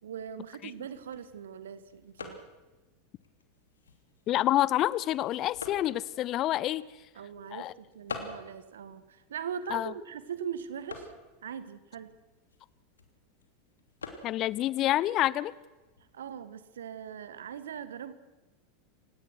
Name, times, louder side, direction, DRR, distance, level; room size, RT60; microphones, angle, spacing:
voice 1, 0.0-2.4 7.1-11.1 11.4-12.1 16.1-18.1, right 8 dB, 65° right, 1.6 m, -40 dB
sound 1, 0.7-16.2, left 4 dB, 75° left, 2.9 m, -49 dB
voice 2, 4.3-6.8 7.5-7.7 9.7-9.9 14.2-15.5, left 14 dB, 40° left, 0.6 m, -27 dB
29.5 x 17.5 x 6.2 m
figure-of-eight pair, 85°, 0 cm